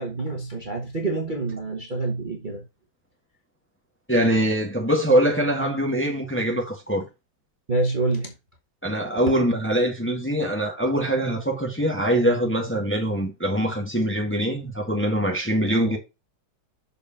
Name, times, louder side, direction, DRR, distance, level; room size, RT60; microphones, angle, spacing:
voice 1, 0.0-2.6 7.7-8.3, right 2 dB, 25° right, 1.3 m, -27 dB
voice 2, 4.1-7.1 8.8-16.0, right 1 dB, 5° left, 1.6 m, -23 dB
6.8 x 5.1 x 4.2 m
omnidirectional pair, 2.2 m